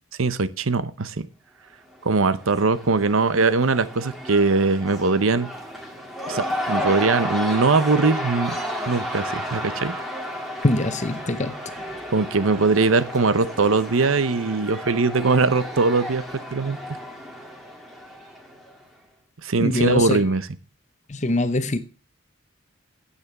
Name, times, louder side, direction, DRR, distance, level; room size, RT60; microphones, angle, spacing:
voice 1, 0.2-1.2 2.0-5.5 6.3-8.6 8.9-9.9 12.1-16.2 16.5-16.8 19.4-20.5, right 3 dB, 80° right, 0.8 m, -21 dB
Cheering / Crowd, 1.9-18.8, equal, ahead, 2.0 m, -32 dB
voice 2, 10.6-11.5 19.6-20.2 21.1-21.8, left 2 dB, 35° left, 0.8 m, -23 dB
9.7 x 8.4 x 5.9 m
head